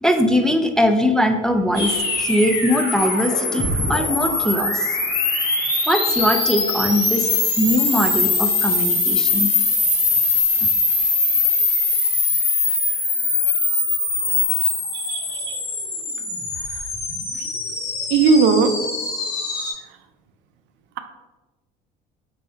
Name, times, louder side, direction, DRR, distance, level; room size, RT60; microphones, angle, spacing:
voice 1, 0.0-5.0 5.9-7.3 7.6-9.5 10.6-10.7, equal, 5° left, 4 dB, 0.3 m, -21 dB
sound 1, 1.7-19.7, left 3 dB, 60° left, 1.4 m, -22 dB
voice 2, 14.9-15.6 18.1-18.7, right 4 dB, 70° right, 8 dB, 0.5 m, -17 dB
3.2 x 2.7 x 4.3 m, 1.2 s
supercardioid pair, 95°, 19 cm